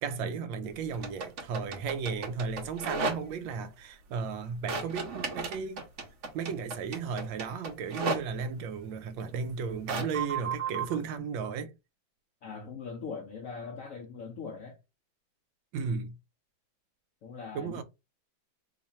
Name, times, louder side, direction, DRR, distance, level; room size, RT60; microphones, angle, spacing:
voice 1, 0.0-5.9 6.3-11.7 15.7-16.1 17.5-17.8, right 5 dB, 80° right, 1.3 m, -35 dB
sound 1, 0.9-3.5 4.7-8.2 9.9-11.0, right 4 dB, 60° right, 0.7 m, -34 dB
voice 2, 12.4-14.8 17.2-17.8, left 5 dB, 80° left, 0.7 m, -41 dB
3.0 x 2.4 x 4.1 m
omnidirectional pair, 2.2 m